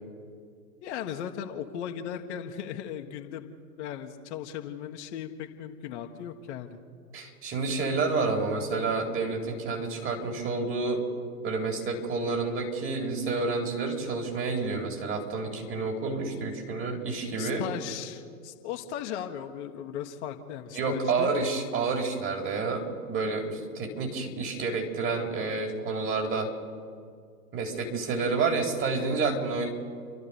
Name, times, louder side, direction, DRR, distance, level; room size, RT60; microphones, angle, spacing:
voice 1, 0.8-6.8 17.4-21.3, left 9 dB, 45° left, 4 dB, 1.6 m, -37 dB
voice 2, 7.1-11.0 11.4-17.6 20.7-26.5 27.5-29.7, right 4 dB, 30° right, 2 dB, 3.9 m, -29 dB
29.5 x 12.5 x 7.1 m, 2.2 s
figure-of-eight pair, 105°, 46 cm